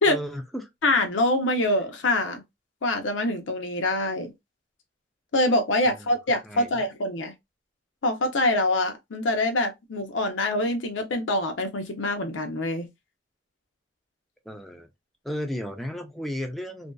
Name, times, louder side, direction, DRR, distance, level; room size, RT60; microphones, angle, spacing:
voice 1, 0.1-0.7 5.8-6.1 6.4-6.8 14.5-14.9 15.2-16.9, equal, ahead, 0.4 m, -34 dB
voice 2, 0.8-2.4 2.8-4.3 5.3-7.3 8.0-12.9, left 1 dB, 85° left, 0.6 m, -25 dB
2.6 x 2.2 x 2.2 m
head